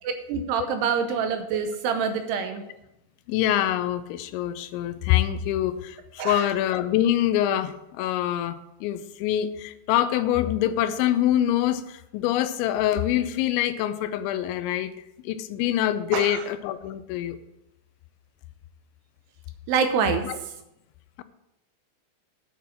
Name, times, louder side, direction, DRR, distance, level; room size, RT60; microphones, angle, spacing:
voice 1, 0.0-2.6 6.2-6.5 16.1-16.4 19.7-20.3, right 6 dB, 75° right, 7 dB, 2.6 m, -26 dB
voice 2, 3.3-14.9 15.2-17.4 20.2-20.4, left 12 dB, 85° left, 12 dB, 3.0 m, -25 dB
10.5 x 5.9 x 7.1 m, 0.88 s
omnidirectional pair, 5.2 m